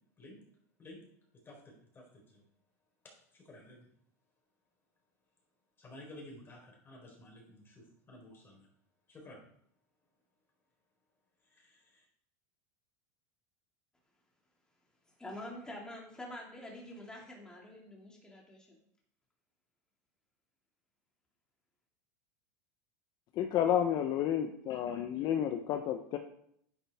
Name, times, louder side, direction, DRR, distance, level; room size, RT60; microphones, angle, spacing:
voice 1, 1.5-2.4 3.0-3.9 5.8-8.7 9.1-9.4 11.6-12.0, left 1 dB, 25° left, 0 dB, 4.0 m, -53 dB
voice 2, 15.2-18.8, left 1 dB, 10° left, -1 dB, 2.3 m, -46 dB
voice 3, 23.4-26.2, left 10 dB, 45° left, 6 dB, 0.8 m, -31 dB
9.8 x 8.8 x 3.5 m, 0.70 s
supercardioid pair, 125°, 10 cm